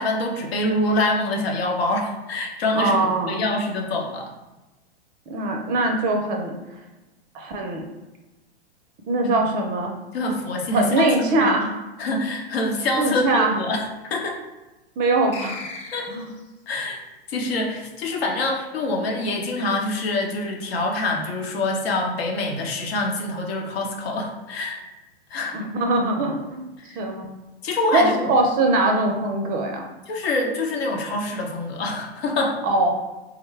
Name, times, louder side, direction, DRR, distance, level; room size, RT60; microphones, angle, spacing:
voice 1, 0.0-4.3 9.2-9.4 10.1-11.5 12.0-14.4 15.9-16.1 16.7-17.0 17.3-24.8 25.3-25.6 26.8-27.0 27.6-28.3 30.1-32.6, left 2 dB, 70° left, 1 dB, 0.9 m, -25 dB
voice 2, 2.7-3.4 5.3-6.5 7.3-7.8 9.1-9.9 10.7-11.8 13.0-13.6 15.0-15.6 16.1-16.3 25.5-26.7 27.0-27.2 27.9-29.9 32.6-33.1, right 2 dB, 30° right, 3 dB, 0.5 m, -22 dB
sound 1, 15.3-16.5, left 3 dB, 20° left, 0.8 m, -37 dB
3.8 x 2.1 x 3.1 m, 1.1 s
hypercardioid pair, 115°, 31 cm